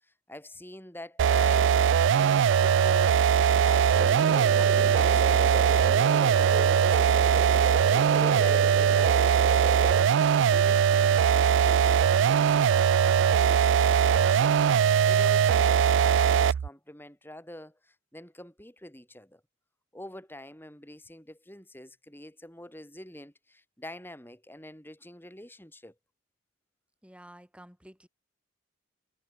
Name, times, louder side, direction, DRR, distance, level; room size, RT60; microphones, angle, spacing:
voice 1, 0.0-1.9 2.6-4.2 4.5-7.2 7.9-10.0 10.5-12.9 13.2-14.6 15.0-19.4 19.9-25.9, left 1 dB, 10° left, 7.6 m, -46 dB
sound 1, 1.2-16.7, right 8 dB, 60° right, 0.3 m, -21 dB
sound 2, 3.9-10.1, right 2 dB, 30° right, 1.8 m, -35 dB
voice 2, 27.0-28.1, right 1 dB, 5° right, 4.6 m, -51 dB
head